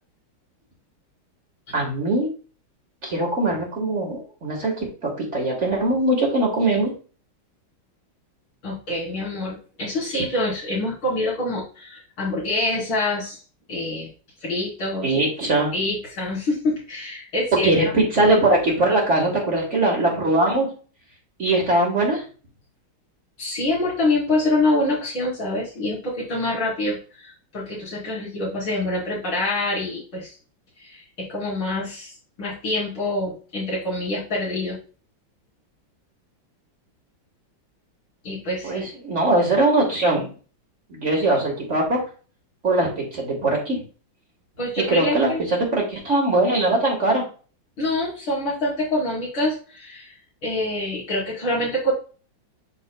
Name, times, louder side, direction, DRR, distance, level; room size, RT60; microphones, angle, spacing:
voice 1, 1.7-2.3 3.0-6.9 15.0-15.7 17.5-20.7 21.4-22.2 38.6-40.3 40.9-42.0 42.6-43.8 44.9-47.2, right 2 dB, 40° right, -1 dB, 1.7 m, -21 dB
voice 2, 8.6-13.4 13.7-14.1 14.4-15.1 15.7-17.7 23.4-30.4 30.8-34.8 38.2-38.9 44.6-45.4 47.8-50.2 50.4-51.9, left 2 dB, 80° left, -7 dB, 4.5 m, -26 dB
10.5 x 4.1 x 2.2 m, 0.38 s
omnidirectional pair, 2.2 m